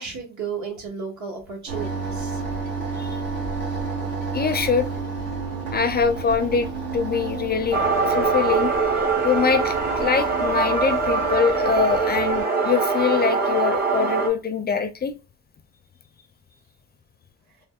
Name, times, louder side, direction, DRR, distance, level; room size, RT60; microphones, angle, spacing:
voice 1, 0.0-2.4, right 6 dB, 70° right, 1.3 m, -33 dB
sound 1, 1.7-12.4, right 4 dB, 85° right, 1.5 m, -31 dB
voice 2, 4.3-4.9 5.7-8.7 9.2-15.2, left 6 dB, 35° left, 0.4 m, -23 dB
sound 2, 7.7-14.3, right 4 dB, 30° right, 0.9 m, -23 dB
3.5 x 2.1 x 2.3 m
cardioid pair, 90°, 30 cm